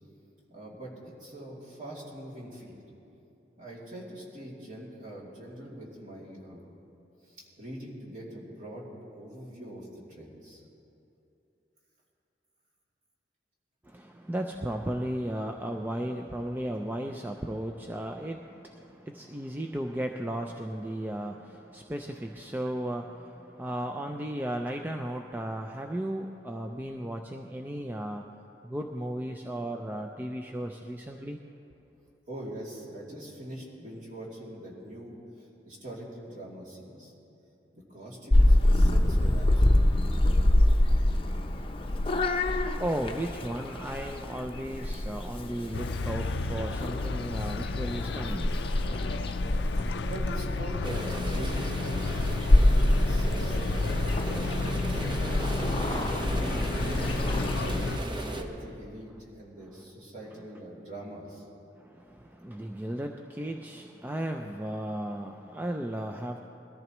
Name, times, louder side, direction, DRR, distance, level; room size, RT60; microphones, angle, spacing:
voice 1, 0.5-2.8 3.5-6.7 7.2-8.9 9.1-10.6 32.3-37.1 37.7-40.6 49.8-52.4 52.8-55.6 56.0-57.9 58.3-61.5, right 1 dB, 45° right, -4 dB, 2.7 m, -43 dB
voice 2, 13.8-28.3 28.6-31.4 42.6-49.1 61.8-66.5, right 1 dB, 10° right, 3 dB, 0.4 m, -35 dB
Purr / Meow, 38.3-57.8, left 1 dB, 30° left, 0.7 m, -26 dB
sound 1, 45.7-58.0, left 3 dB, 75° left, 0.5 m, -32 dB
sound 2, 50.8-58.4, right 1 dB, 25° right, 0.8 m, -35 dB
21.5 x 14.0 x 3.0 m, 2.8 s
head